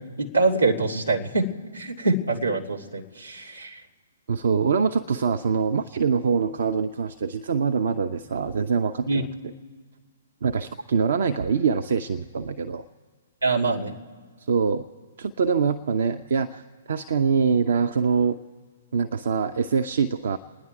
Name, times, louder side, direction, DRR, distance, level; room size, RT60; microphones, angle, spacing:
voice 1, 0.2-1.5 1.7-3.8 9.1-9.2 13.4-14.0, right 3 dB, 85° right, -3 dB, 2.3 m, -24 dB
voice 2, 4.3-9.3 10.4-12.8 14.5-14.9 15.2-18.4 18.9-20.4, right 5 dB, 55° right, 7 dB, 0.6 m, -24 dB
28.5 x 10.0 x 4.7 m, 1.6 s
figure-of-eight pair, 120°, 0 cm